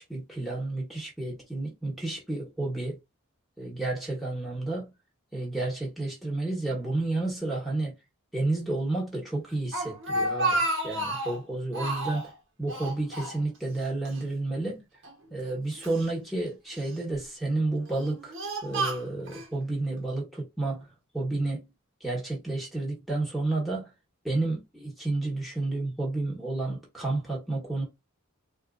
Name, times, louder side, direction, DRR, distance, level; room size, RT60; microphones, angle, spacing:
voice 1, 0.0-3.0 3.6-4.9 5.3-8.0 8.3-12.3 12.6-14.8 15.3-20.9 21.1-21.6 22.0-23.9 24.2-27.8, right 2 dB, ahead, 1.3 m, -31 dB
Speech, 9.5-11.4 11.7-12.3 12.7-13.8 14.1-14.2 15.0-16.0 16.7-17.2 17.8-19.5, right 1 dB, 55° right, 1.1 m, -31 dB
4.1 x 2.5 x 2.4 m
head